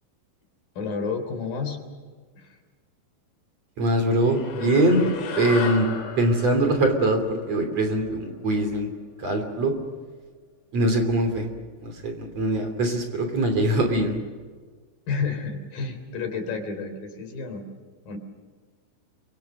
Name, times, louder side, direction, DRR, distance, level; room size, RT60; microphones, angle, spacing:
voice 1, 0.8-1.8 2.4-2.5 15.1-17.6 18.0-18.2, left 5 dB, 50° left, 6 dB, 4.9 m, -30 dB
voice 2, 3.8-5.0 5.4-5.9 6.2-8.9 9.2-9.7 10.7-11.5 11.8-14.2, right 1 dB, 40° right, 5 dB, 3.8 m, -22 dB
sound 1, 4.1-8.8, left 6 dB, 85° left, 5.1 m, -35 dB
28.5 x 25.0 x 6.7 m, 1.5 s
omnidirectional pair, 5.2 m